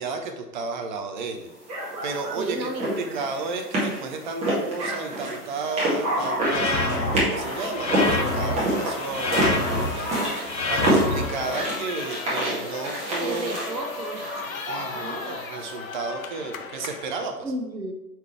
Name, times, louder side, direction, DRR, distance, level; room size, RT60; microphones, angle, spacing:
voice 1, 0.0-1.5 2.0-2.7 3.0-10.2 10.7-13.5 14.7-17.4, right 4 dB, 30° right, 4 dB, 0.6 m, -32 dB
sound 1, 1.7-15.7, right 1 dB, 15° right, 1.8 m, -28 dB
voice 2, 2.4-3.2 13.2-14.3 14.9-15.4 17.4-17.9, right 2 dB, 90° right, 5 dB, 1.1 m, -33 dB
sound 2, 6.4-7.2 7.8-8.6 9.1-9.9 10.5-11.2, left 2 dB, 85° left, 1.0 m, -26 dB
sound 3, 6.5-17.2, left 5 dB, 55° left, 0.9 m, -37 dB
8.1 x 4.4 x 3.3 m, 0.98 s
figure-of-eight pair, 120°, 50 cm